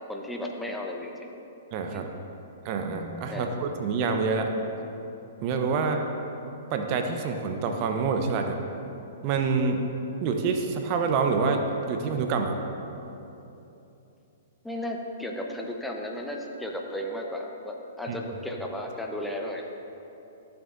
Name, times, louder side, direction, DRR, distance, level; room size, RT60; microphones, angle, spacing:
voice 1, 0.1-1.3 1.9-2.1 3.3-3.5 5.8-5.9 14.6-19.6, left 1 dB, 5° left, 1 dB, 0.8 m, -34 dB
voice 2, 1.7-2.1 2.6-4.5 5.4-6.1 6.7-8.6 9.2-9.8 10.2-12.6 18.1-18.2, right 4 dB, 40° right, 5 dB, 0.7 m, -27 dB
13.5 x 7.1 x 2.6 m, 2.9 s
figure-of-eight pair, 115°, 0 cm